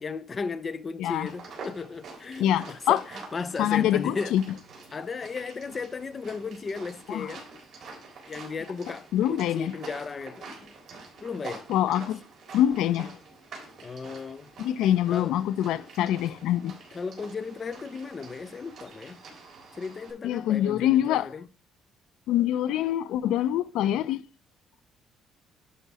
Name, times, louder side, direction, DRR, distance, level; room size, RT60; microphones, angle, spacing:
voice 1, 0.0-4.4 4.9-7.5 8.3-10.7 11.2-11.6 13.8-14.5 15.1-15.4 16.9-19.2 19.7-21.5, left 5 dB, 25° left, 0.6 m, -35 dB
sound 1, 1.3-20.1, right 3 dB, 50° right, 3.7 m, -46 dB
voice 2, 2.4-3.0 3.6-4.4 7.1-7.3 9.1-9.7 11.7-12.2 12.5-13.2 14.6-16.8 20.2-21.3 22.3-24.2, left 12 dB, 80° left, 0.4 m, -25 dB
11.0 x 4.1 x 4.8 m
cardioid pair, 140°, 0 cm